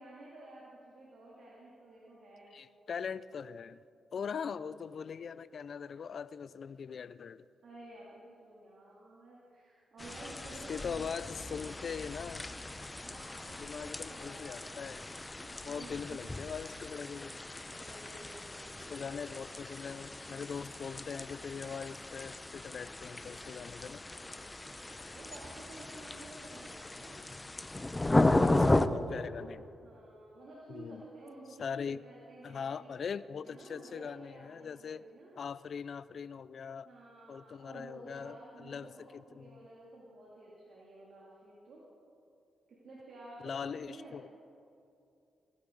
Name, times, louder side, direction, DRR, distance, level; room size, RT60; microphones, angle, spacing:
voice 1, 0.0-2.6 4.2-4.8 7.6-11.8 13.0-14.8 15.4-16.3 17.7-19.5 24.8-27.2 29.1-29.5 29.8-32.9 33.4-35.3 36.8-41.8 42.7-44.3, right 2 dB, 65° right, -6 dB, 2.8 m, -52 dB
voice 2, 2.5-3.8 4.1-7.4 10.7-12.5 13.6-15.0 15.6-17.3 18.9-24.0 28.0-28.4 28.7-29.6 30.7-31.0 31.6-32.0 32.4-35.0 35.3-36.9 37.3-39.6 43.4-44.3, left 6 dB, 65° left, 17 dB, 0.4 m, -41 dB
sound 1, 10.0-28.9, left 2 dB, 20° left, 0.7 m, -35 dB
21.5 x 11.5 x 4.0 m, 2.6 s
supercardioid pair, 55°, 0 cm